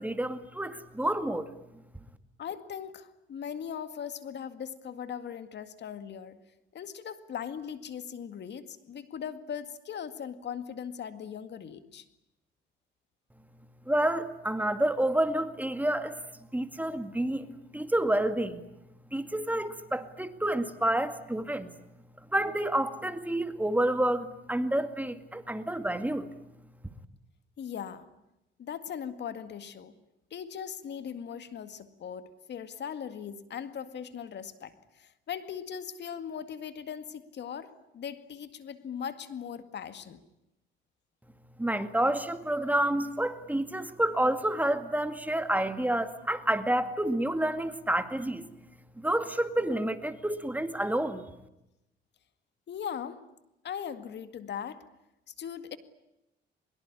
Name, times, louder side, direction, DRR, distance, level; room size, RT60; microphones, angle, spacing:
voice 1, 0.0-1.5 13.9-16.2 16.5-18.6 19.1-21.7 22.3-26.3 41.6-48.5 49.0-51.2, right 1 dB, 10° right, 9 dB, 2.2 m, -29 dB
voice 2, 2.4-6.4 6.7-12.1 27.6-28.1 28.6-30.0 30.3-40.2 52.7-53.3 53.6-54.9 55.4-55.8, left 8 dB, 60° left, 11 dB, 2.1 m, -39 dB
23.5 x 22.5 x 9.8 m, 0.88 s
cardioid pair, 90°, 20 cm